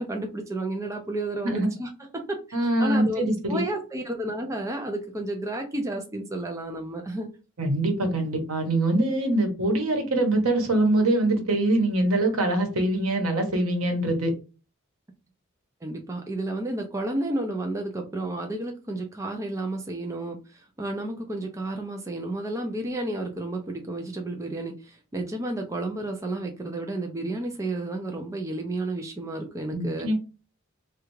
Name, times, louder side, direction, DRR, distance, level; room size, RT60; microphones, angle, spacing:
voice 1, 0.0-2.4 2.8-7.3 15.8-30.1, right 2 dB, 15° right, 3 dB, 0.4 m, -31 dB
voice 2, 2.5-3.6 7.6-14.3 29.7-30.1, right 1 dB, 80° right, 4 dB, 1.1 m, -23 dB
3.3 x 2.4 x 3.1 m, 0.33 s
head